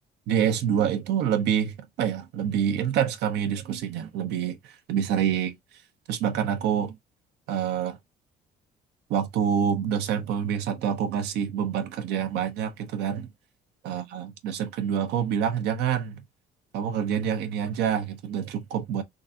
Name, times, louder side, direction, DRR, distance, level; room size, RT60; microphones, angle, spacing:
voice 1, 0.3-5.5 6.1-7.0 7.5-8.0 9.1-13.3 13.8-16.2 16.7-19.0, right 8 dB, 85° right, 0.9 m, -27 dB
3.8 x 2.6 x 2.7 m
cardioid pair, 110°, 17 cm